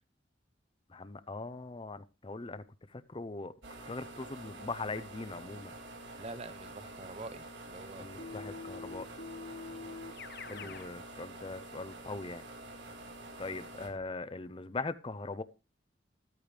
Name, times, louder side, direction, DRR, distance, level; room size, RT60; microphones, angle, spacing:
voice 1, 0.9-2.6 3.1-3.5 3.9-5.7 8.0-9.1 10.5-12.4 13.4-15.4, left 3 dB, 30° left, 14 dB, 0.6 m, -40 dB
sound 1, 3.6-13.9, right 2 dB, 80° right, 4.3 m, -48 dB
voice 2, 6.2-8.6 9.7-9.9, right 2 dB, 35° right, 15 dB, 0.7 m, -47 dB
Keyboard (musical), 8.2-10.9, left 4 dB, 60° left, 1.1 m, -45 dB
14.0 x 13.5 x 3.3 m, 0.30 s
head